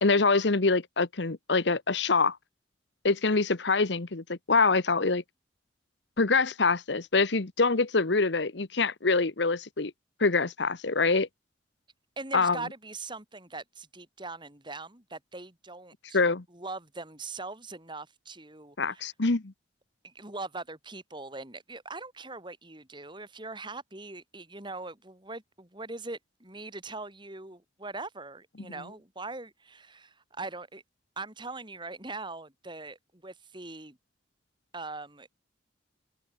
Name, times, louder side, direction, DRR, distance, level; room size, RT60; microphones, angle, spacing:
voice 1, 0.0-2.4 3.0-5.2 6.2-9.9 10.2-11.3 12.3-12.6 16.1-16.4 18.8-19.5, left 3 dB, 65° left, 1.1 m, -25 dB
voice 2, 12.2-16.2 16.5-19.1 20.0-30.8 31.2-34.0 34.7-35.3, right 3 dB, 25° right, 3.7 m, -41 dB
open air
head